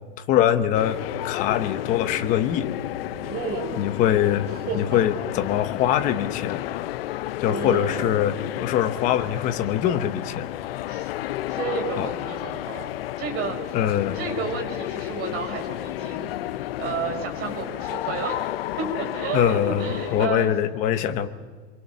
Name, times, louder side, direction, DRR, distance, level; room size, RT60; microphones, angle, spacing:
voice 1, 0.3-1.0 1.2-2.7 3.8-6.7 7.4-10.5 12.0-12.1 13.7-14.2 19.3-21.3, left 10 dB, 25° left, 11 dB, 0.9 m, -23 dB
sound 1, 0.7-20.3, left 15 dB, 60° left, 0.7 m, -32 dB
voice 2, 3.1-3.8 4.5-5.0 7.4-8.2 10.9-11.1 11.5-12.9 13.2-13.8 14.1-18.5 18.8-20.5 20.9-21.1, right 5 dB, 30° right, 3 dB, 4.4 m, -31 dB
28.5 x 23.5 x 6.7 m, 1.5 s
supercardioid pair, 175°, 34 cm